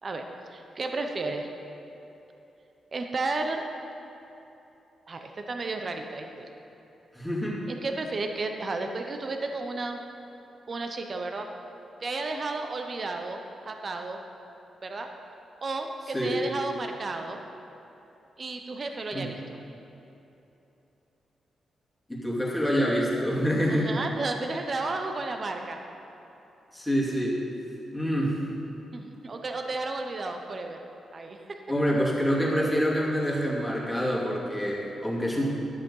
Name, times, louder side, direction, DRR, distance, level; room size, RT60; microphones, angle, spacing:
voice 1, 0.0-1.5 2.9-3.7 5.1-6.5 7.7-10.0 10.7-11.5 12.0-13.4 13.7-14.2 14.8-15.1 15.6-17.4 18.4-19.6 23.7-25.8 28.9-30.8 31.1-31.6, right 3 dB, 45° right, 4 dB, 0.9 m, -33 dB
voice 2, 7.1-7.7 16.1-16.4 19.1-19.3 22.1-23.9 26.7-27.4 27.9-28.4 31.7-35.4, equal, 5° left, -5 dB, 2.5 m, -26 dB
11.5 x 7.6 x 5.6 m, 3.0 s
cardioid pair, 85°, 0 cm